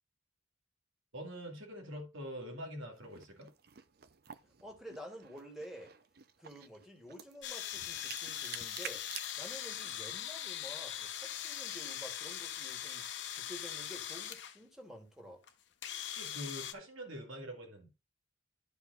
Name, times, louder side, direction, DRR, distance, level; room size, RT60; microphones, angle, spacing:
voice 1, 1.1-3.5 16.1-17.9, equal, 85° right, 2.3 m, -44 dB
sound 1, 2.9-10.2, right 9 dB, 50° right, 0.6 m, -51 dB
voice 2, 4.6-5.9 6.4-9.0 9.4-13.0 13.3-15.4, equal, ahead, 1.9 m, -50 dB
sound 2, 7.4-14.6 15.4-15.5 15.8-16.7, left 10 dB, 60° left, 0.9 m, -41 dB
10.5 x 4.8 x 3.9 m
head